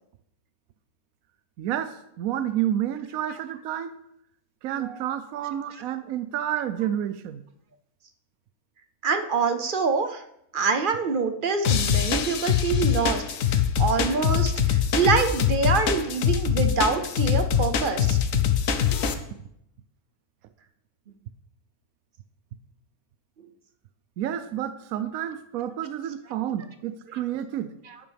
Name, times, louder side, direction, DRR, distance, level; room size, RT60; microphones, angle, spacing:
voice 1, 1.6-3.9 4.6-7.4 24.2-27.7, right 11 dB, 70° right, 11 dB, 1.0 m, -30 dB
voice 2, 9.0-10.2 10.5-13.2 13.5-18.2 27.9-28.0, right 5 dB, 50° right, 7 dB, 0.6 m, -25 dB
sound 1, 11.6-19.1, left 8 dB, 65° left, 1.1 m, -23 dB
11.0 x 8.8 x 3.5 m, 0.78 s
omnidirectional pair, 1.6 m